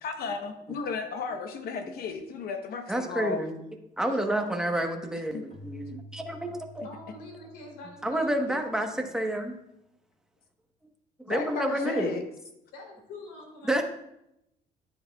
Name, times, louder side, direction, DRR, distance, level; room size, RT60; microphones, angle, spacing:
voice 1, 0.0-3.4 5.3-5.4 11.3-12.2, left 5 dB, 65° left, 6 dB, 0.9 m, -34 dB
voice 2, 2.9-3.6 4.0-6.8 8.0-9.6 11.2-12.2 13.6-13.8, right 1 dB, 5° right, 3 dB, 1.1 m, -29 dB
voice 3, 4.0-4.8 6.8-8.9 11.4-12.2 12.7-13.8, left 2 dB, 85° left, 0 dB, 3.1 m, -46 dB
Keyboard (musical), 5.5-9.0, equal, 45° left, 1.6 m, -49 dB
10.0 x 9.8 x 2.3 m, 0.84 s
cardioid pair, 110°, 17 cm